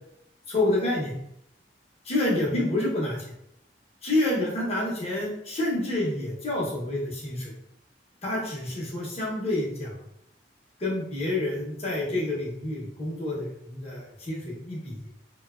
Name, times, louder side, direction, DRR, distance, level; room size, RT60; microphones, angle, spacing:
voice 1, 0.5-1.1 2.0-3.2 4.0-7.5 8.2-10.0 10.8-15.1, left 1 dB, 35° left, -5 dB, 0.8 m, -28 dB
2.6 x 2.2 x 2.3 m, 0.78 s
head